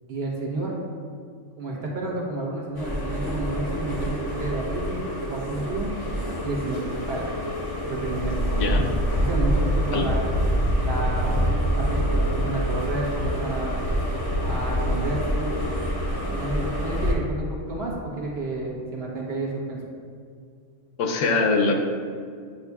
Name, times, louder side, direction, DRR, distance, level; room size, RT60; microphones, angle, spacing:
voice 1, 0.1-0.8 1.6-5.9 6.4-7.3 7.8-8.8 9.2-10.3 10.8-13.8 14.4-15.5 16.3-19.8, right 2 dB, 55° right, -2 dB, 1.3 m, -31 dB
sound 1, 2.7-17.1, equal, 25° left, 0.7 m, -26 dB
voice 2, 8.5-8.9 9.9-10.1 21.0-21.7, left 3 dB, 75° left, 3 dB, 1.0 m, -22 dB
8.6 x 5.3 x 2.3 m, 2.2 s
omnidirectional pair, 1.3 m